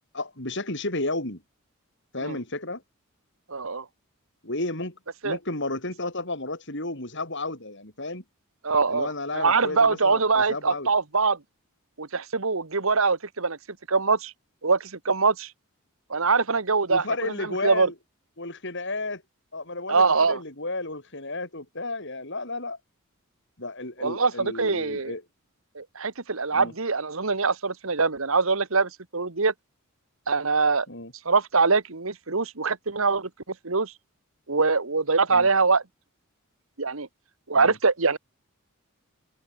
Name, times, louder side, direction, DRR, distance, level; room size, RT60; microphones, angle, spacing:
voice 1, 0.1-1.4 2.1-2.8 4.4-5.0 5.2-8.2 8.9-10.9 16.9-17.9 18.4-19.2 19.5-22.8 23.6-25.2 26.5-26.7 30.9-31.1 35.3-35.5 37.5-37.8, left 2 dB, 55° left, 7.4 m, -32 dB
voice 2, 3.5-3.8 5.2-5.4 8.6-11.4 12.0-13.6 13.9-14.3 14.6-15.5 16.1-17.0 17.6-17.9 19.9-20.4 24.0-25.1 25.7-29.5 30.3-30.9 31.2-33.3 33.6-33.9 34.5-35.8 36.8-37.1 37.5-38.2, right 4 dB, 65° right, 1.5 m, -23 dB
head